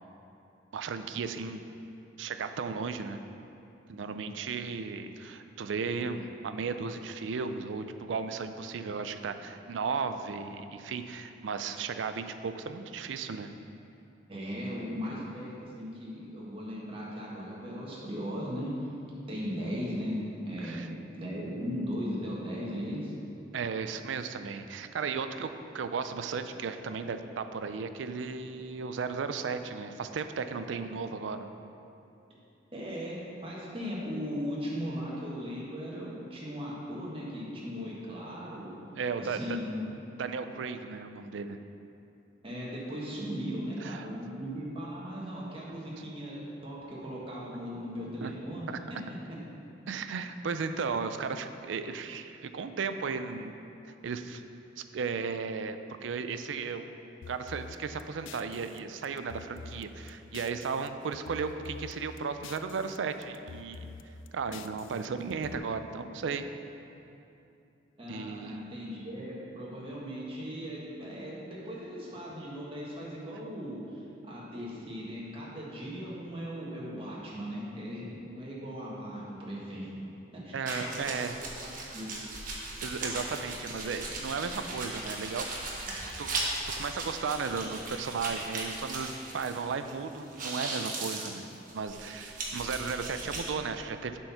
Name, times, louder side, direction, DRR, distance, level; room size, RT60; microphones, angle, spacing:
voice 1, 0.7-1.6 2.2-3.2 3.9-13.5 20.6-20.9 23.5-31.5 39.0-39.4 40.2-41.6 43.8-44.1 48.2-48.3 48.7-48.8 49.9-53.5 53.9-54.4 54.8-56.9 57.3-63.9 64.3-66.5 68.1-68.6 80.5-81.4 82.8-85.5 85.8-91.4 91.7-94.2, right 5 dB, 75° right, 9 dB, 0.4 m, -35 dB
voice 2, 14.3-18.7 19.3-23.1 32.7-38.7 39.2-39.8 42.4-49.0 49.3-49.4 68.0-80.0 80.3-81.2 81.6-82.2, equal, 30° right, -5 dB, 1.5 m, -38 dB
sound 1, 57.2-60.9 61.1-63.0 63.2-65.6, left 5 dB, 85° left, 0.3 m, -47 dB
sound 2, 80.7-89.9 90.2-93.5, right 2 dB, 45° right, 1.1 m, -38 dB
7.6 x 4.5 x 5.6 m, 2.8 s
head